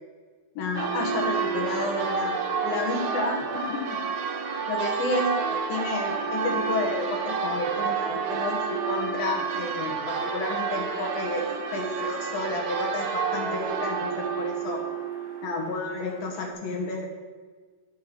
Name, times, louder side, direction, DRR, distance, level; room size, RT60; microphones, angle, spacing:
voice 1, 0.5-4.1 4.7-14.8 15.4-17.1, left 2 dB, 80° left, 1 dB, 3.4 m, -31 dB
Church bell, 0.8-16.5, right 5 dB, 70° right, 2.0 m, -30 dB
12.5 x 5.7 x 6.2 m, 1.5 s
omnidirectional pair, 4.1 m